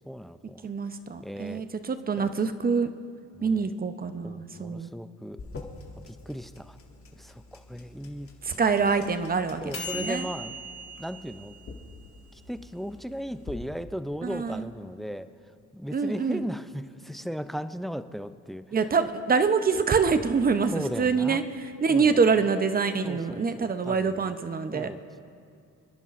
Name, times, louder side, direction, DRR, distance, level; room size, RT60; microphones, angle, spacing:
voice 1, 0.0-0.7 1.2-1.6 2.2-2.3 3.4-3.7 4.2-5.4 6.0-6.8 7.2-8.3 9.6-10.5 11.0-11.5 12.3-15.3 15.7-18.6 20.7-21.4 21.9-22.2 23.0-24.3 24.7-25.2, equal, ahead, 12 dB, 0.4 m, -36 dB
voice 2, 0.6-2.9 3.4-4.9 8.4-9.6 9.9-10.3 14.2-14.7 15.9-16.5 18.7-24.9, right 5 dB, 30° right, 10 dB, 0.7 m, -25 dB
sound 1, 5.4-13.5, left 1 dB, 45° left, 1.9 m, -41 dB
30.0 x 10.5 x 2.5 m, 2.4 s
cardioid pair, 90°, 30 cm